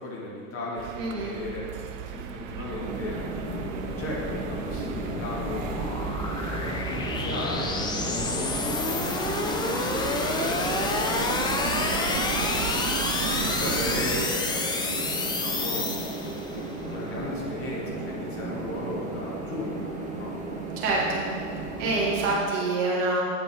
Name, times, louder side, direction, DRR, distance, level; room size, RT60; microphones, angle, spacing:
voice 1, 0.0-5.9 6.5-13.0 13.2-15.9 16.5-20.3, left 1 dB, 30° left, -4 dB, 1.9 m, -37 dB
sound 1, 0.8-14.3, right 10 dB, 65° right, 0.5 m, -36 dB
voice 2, 1.0-1.3 20.8-21.2 21.8-23.2, right 2 dB, 50° right, -4 dB, 1.7 m, -26 dB
sound 2, 2.1-16.6, left 3 dB, 10° left, 0.4 m, -29 dB
sound 3, 2.8-22.4, right 3 dB, 15° right, 1.4 m, -35 dB
8.6 x 4.6 x 5.4 m, 2.4 s
figure-of-eight pair, 80°, 42 cm